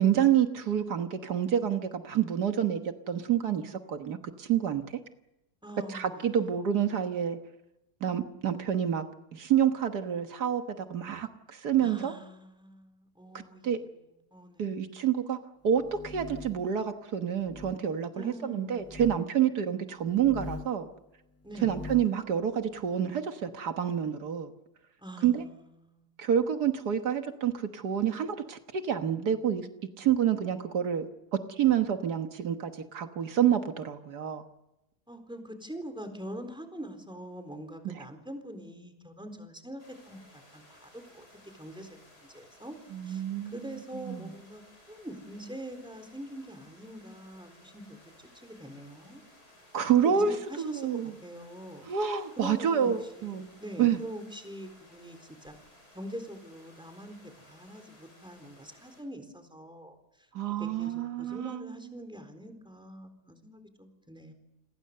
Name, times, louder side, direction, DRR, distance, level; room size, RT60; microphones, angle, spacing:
voice 1, 0.0-2.8 3.1-4.8 5.9-7.4 8.0-9.1 9.3-12.1 13.3-13.8 14.6-15.4 15.6-20.9 21.6-24.5 25.2-25.4 26.2-29.7 30.0-31.1 31.5-34.4 37.9-38.0 42.9-43.5 44.1-44.3 49.7-50.3 50.6-51.1 51.9-53.5 53.8-54.0 60.3-61.6, right 9 dB, 85° right, 7 dB, 1.9 m, -28 dB
voice 2, 5.6-6.5 11.8-14.0 14.3-15.1 18.1-19.1 21.4-21.7 25.0-25.5 25.8-26.1 35.1-41.3 41.6-42.8 43.0-48.0 48.3-49.2 50.1-50.9 51.2-51.9 52.4-55.5 55.9-60.3 60.6-64.3, equal, 5° right, 6 dB, 4.0 m, -44 dB
sound 1, 15.7-16.7 17.4-17.8 18.8-19.2 20.1-20.8 21.5-22.2, left 3 dB, 15° left, 0.7 m, -42 dB
sound 2, 39.8-59.0, left 1 dB, 85° left, 7.2 m, -58 dB
29.0 x 22.0 x 6.8 m, 0.92 s
omnidirectional pair, 1.7 m